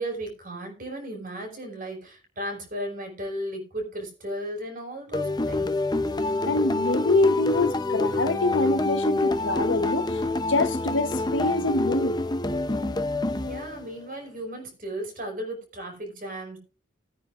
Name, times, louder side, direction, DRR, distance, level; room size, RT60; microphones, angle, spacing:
voice 1, 0.0-5.7 13.4-16.6, right 1 dB, 45° right, 5.3 m, -35 dB
sound 1, 5.1-14.1, left 2 dB, 20° left, 0.6 m, -26 dB
voice 2, 6.4-10.2 10.5-12.2, left 2 dB, 75° left, 1.0 m, -26 dB
20.5 x 9.4 x 2.5 m
head